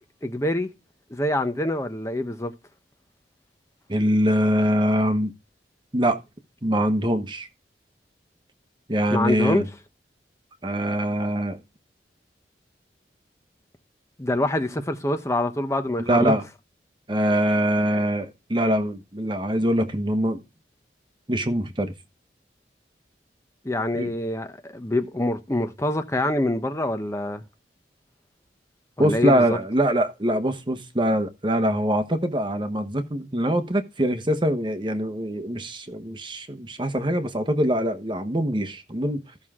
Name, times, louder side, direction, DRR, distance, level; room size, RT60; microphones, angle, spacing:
voice 1, 0.2-0.7 1.1-2.5 9.1-9.6 14.2-16.3 23.6-27.4 29.0-29.6, left 1 dB, 15° left, 0.9 m, -25 dB
voice 2, 3.9-5.3 5.9-6.2 6.6-7.5 8.9-9.7 10.6-11.6 16.0-16.4 17.1-20.4 21.3-21.9 23.9-24.1 29.0-39.2, equal, 25° right, 1.1 m, -23 dB
14.5 x 6.3 x 3.7 m
head